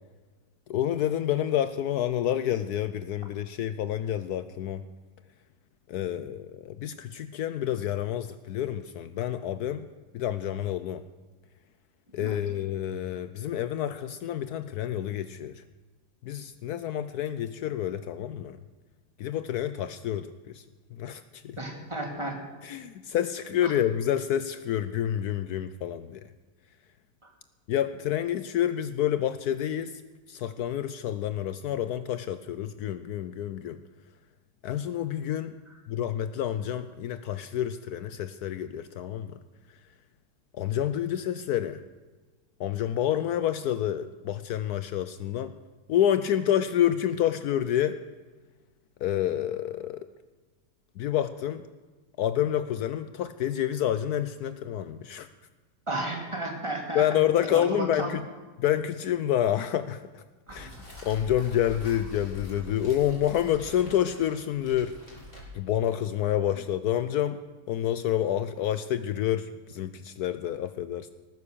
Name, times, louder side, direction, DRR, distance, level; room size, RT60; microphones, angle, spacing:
voice 1, 0.7-4.8 5.9-9.9 10.1-11.0 12.1-15.6 16.2-18.6 19.2-20.6 20.9-21.6 22.6-26.2 27.7-29.9 30.3-33.8 34.6-35.5 35.9-39.3 40.5-41.8 42.6-45.5 45.9-48.0 49.0-50.1 51.0-51.6 52.2-55.3 56.9-58.2 58.6-60.2 60.5-60.7 61.0-64.9 65.5-67.4 67.7-71.1, left 11 dB, 70° left, 11 dB, 1.1 m, -28 dB
voice 2, 21.6-22.4 23.6-23.7 27.2-27.3 55.9-57.0 57.4-58.1 60.5-60.7, right 1 dB, 15° right, 1 dB, 2.3 m, -33 dB
sound 1, 60.5-65.8, left 1 dB, 25° left, 4.1 m, -45 dB
18.0 x 9.9 x 6.8 m, 1.3 s
omnidirectional pair, 1.8 m